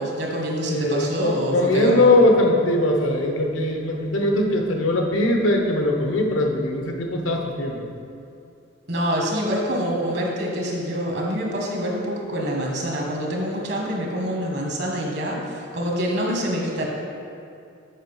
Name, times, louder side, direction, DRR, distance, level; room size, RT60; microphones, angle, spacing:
voice 1, 0.0-2.2 8.9-16.9, equal, 55° right, -1 dB, 1.5 m, -26 dB
voice 2, 0.7-7.8, left 1 dB, 80° left, 2 dB, 1.0 m, -21 dB
7.5 x 5.3 x 5.5 m, 2.5 s
head